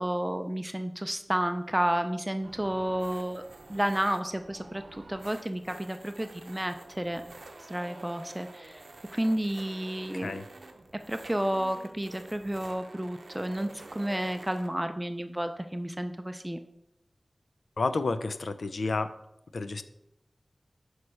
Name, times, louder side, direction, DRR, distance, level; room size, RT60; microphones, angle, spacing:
voice 1, 0.0-3.4 3.7-7.2 7.6-8.8 9.1-10.4 11.1-16.6, right 1 dB, 15° right, 8 dB, 0.4 m, -31 dB
sound 1, 2.4-14.7, right 2 dB, 85° right, 0.6 m, -49 dB
voice 2, 10.1-10.5 17.8-19.1 19.5-19.8, left 3 dB, 90° left, 12 dB, 0.3 m, -30 dB
6.2 x 3.2 x 5.4 m, 0.86 s
wide cardioid pair, 45°, 0 cm